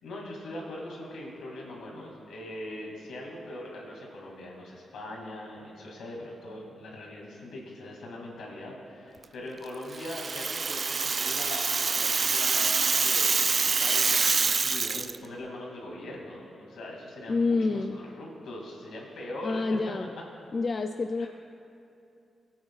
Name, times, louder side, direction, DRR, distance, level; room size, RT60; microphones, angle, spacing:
voice 1, 0.0-19.6 21.2-21.3, left 1 dB, 80° left, -2 dB, 2.4 m, -41 dB
Rattle (instrument), 9.9-15.2, right 4 dB, 45° right, 0.3 m, -26 dB
voice 2, 17.3-18.0 19.4-20.1 20.5-21.3, left 3 dB, 45° left, 6 dB, 0.4 m, -28 dB
20.5 x 8.5 x 2.4 m, 2.6 s
cardioid pair, 70°, 0 cm